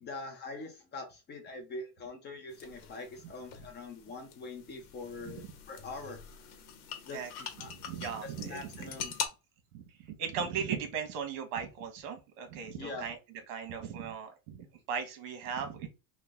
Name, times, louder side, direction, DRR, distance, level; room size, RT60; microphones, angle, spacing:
voice 1, 0.0-6.2 7.1-7.2 7.6-7.7 8.2-9.1 12.8-13.1, left 3 dB, 25° left, 5 dB, 0.6 m, -43 dB
sound 1, 2.5-9.3, left 8 dB, 75° left, 1.3 m, -44 dB
voice 2, 7.6-8.9 9.7-13.2 13.5-15.9, right 7 dB, 60° right, 6 dB, 1.3 m, -38 dB
4.0 x 2.2 x 3.5 m, 0.27 s
supercardioid pair, 150°, 45 cm